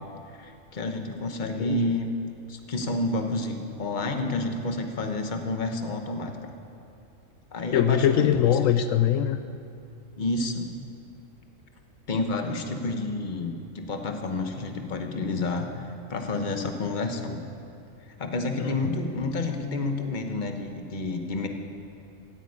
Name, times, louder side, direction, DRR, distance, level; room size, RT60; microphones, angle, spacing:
voice 1, 0.3-2.1 2.5-6.3 7.5-8.3 8.6-8.7 10.2-10.7 12.1-17.4 18.2-21.5, left 2 dB, 35° left, 5 dB, 1.2 m, -29 dB
voice 2, 1.6-2.0 7.7-9.4 18.6-18.9, left 10 dB, 80° left, 10 dB, 1.0 m, -23 dB
16.0 x 9.5 x 8.4 m, 2.5 s
omnidirectional pair, 1.4 m